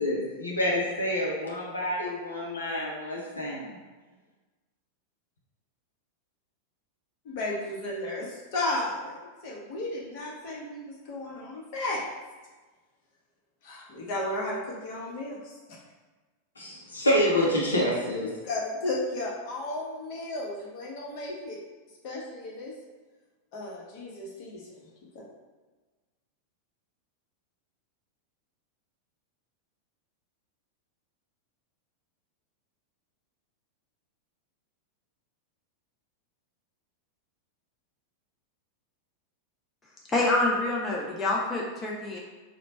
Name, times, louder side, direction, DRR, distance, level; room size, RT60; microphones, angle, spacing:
voice 1, 0.0-3.8 16.6-18.3, equal, 75° left, -3 dB, 0.6 m, -27 dB
voice 2, 7.2-9.2 9.4-12.0 13.6-15.8 18.2-19.8 20.1-21.6 22.0-22.7 23.5-24.8 25.1-25.2, left 2 dB, 45° left, -3 dB, 0.9 m, -34 dB
voice 3, 40.1-42.2, left 2 dB, 20° left, -3 dB, 0.5 m, -26 dB
3.1 x 2.2 x 4.0 m, 1.3 s
figure-of-eight pair, 90°, 0 cm